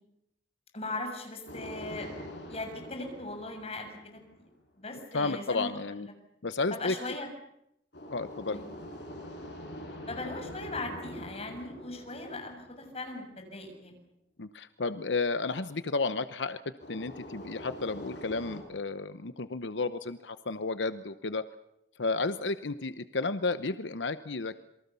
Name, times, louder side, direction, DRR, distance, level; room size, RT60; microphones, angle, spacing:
voice 1, 0.7-2.1 2.4-4.5 4.7-5.7 6.7-7.3 8.5-8.6 10.1-13.9, left 2 dB, 35° left, 4 dB, 6.6 m, -39 dB
sound 1, 1.5-4.5 7.9-13.3 16.8-18.6, left 1 dB, 70° left, 7.1 m, -44 dB
voice 2, 5.1-6.1 6.4-6.9 8.1-8.6 14.4-16.6 16.9-21.4 22.0-24.6, left 3 dB, 90° left, 12 dB, 0.9 m, -32 dB
27.5 x 23.5 x 7.0 m, 0.80 s
head